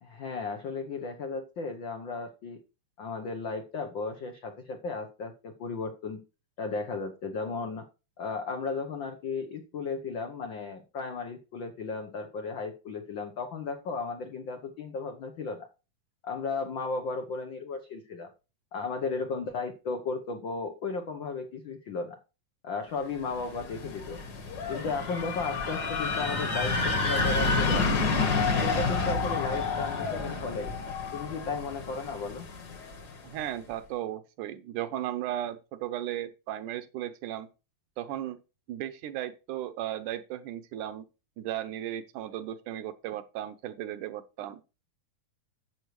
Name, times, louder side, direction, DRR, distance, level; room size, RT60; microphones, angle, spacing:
voice 1, 0.0-2.6 3.0-6.2 6.6-7.9 8.2-15.7 16.2-18.3 18.7-22.2 22.6-24.2 24.7-28.1 28.6-30.7 31.1-32.5, left 4 dB, 80° left, 1.0 m, -35 dB
sound 1, 23.3-33.1, left 3 dB, 45° left, 1.5 m, -29 dB
voice 2, 33.2-37.5 38.0-38.4 38.7-41.1 41.4-44.6, right 12 dB, 75° right, 2.2 m, -35 dB
11.5 x 7.9 x 3.2 m
omnidirectional pair, 3.7 m